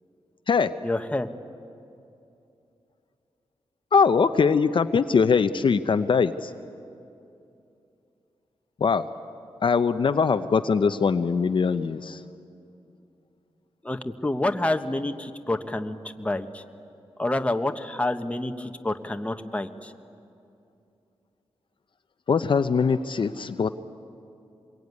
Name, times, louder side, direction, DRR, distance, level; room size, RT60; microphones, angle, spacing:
voice 1, 0.8-1.3 13.8-16.6 17.2-19.9, left 1 dB, 10° left, 7 dB, 1.2 m, -28 dB
voice 2, 3.9-6.5 8.8-9.0 9.6-12.2 22.3-23.7, left 5 dB, 55° left, 10 dB, 0.7 m, -22 dB
25.5 x 22.0 x 9.6 m, 2.6 s
wide cardioid pair, 95°, 10 cm